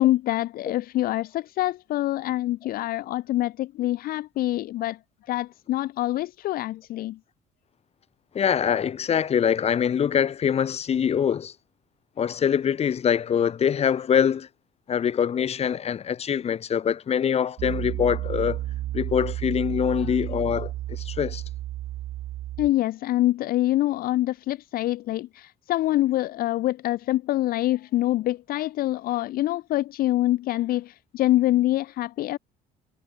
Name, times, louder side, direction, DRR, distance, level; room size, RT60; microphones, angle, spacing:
voice 1, 0.0-5.0 5.3-7.2 22.6-32.4, left 15 dB, 60° left, 0.4 m, -25 dB
voice 2, 8.3-11.5 12.2-14.5 14.9-18.6 18.9-21.4, left 8 dB, 40° left, 0.9 m, -24 dB
Piano, 17.6-22.7, right 14 dB, 70° right, 3.4 m, -32 dB
cardioid pair, 110°, 17 cm